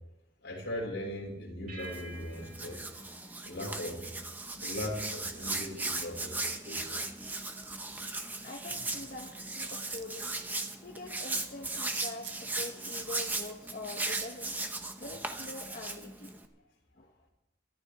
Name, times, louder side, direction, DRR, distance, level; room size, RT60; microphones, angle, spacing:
voice 1, 0.4-3.2 3.4-4.1 4.5-7.0 8.7-8.8, left 1 dB, 75° left, -2 dB, 6.1 m, -39 dB
sound 1, 1.7-4.4, right 2 dB, 45° right, 4.0 m, -50 dB
Hands, 1.8-16.5, right 2 dB, 10° right, 1.0 m, -37 dB
sound 2, 6.9-7.3 7.6-8.0 9.2-9.3 9.6-10.5 11.8-12.3 13.5-13.6 14.0-14.3, right 10 dB, 65° right, 1.0 m, -46 dB
voice 2, 8.4-10.3 10.8-16.4 16.9-17.3, left 2 dB, 45° left, 1 dB, 1.2 m, -44 dB
22.5 x 14.0 x 3.6 m, 0.93 s
head